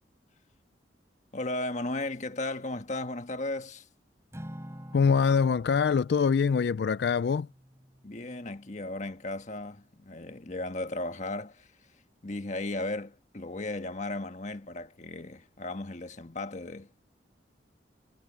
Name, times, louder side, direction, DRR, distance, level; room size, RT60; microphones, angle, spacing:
voice 1, 1.3-3.9 8.0-11.7 12.2-17.1, left 2 dB, 45° left, 1.5 m, -35 dB
Acoustic guitar / Strum, 4.3-8.8, equal, 15° right, 4.0 m, -48 dB
voice 2, 4.9-7.5, left 6 dB, 65° left, 0.3 m, -24 dB
head